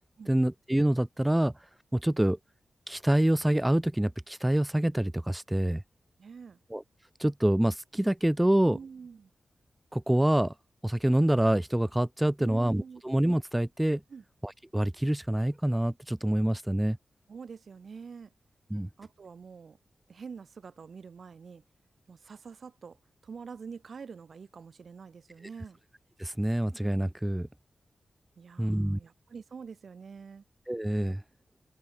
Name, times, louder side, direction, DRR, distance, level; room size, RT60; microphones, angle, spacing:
voice 1, 0.3-1.5 1.9-2.4 2.9-5.8 6.7-6.8 7.2-8.8 9.9-10.5 10.8-14.0 14.4-17.0 18.7-18.9 26.2-27.5 28.6-29.0 30.7-31.2, right 1 dB, 10° right, 0.4 m, -26 dB
voice 2, 6.2-6.6 8.7-9.3 12.4-13.0 14.1-14.2 17.3-18.3 19.0-19.8 20.1-21.6 22.1-23.0 23.2-25.8 28.4-30.4, right 5 dB, 65° right, 5.7 m, -46 dB
wide cardioid pair, 100°, 0 cm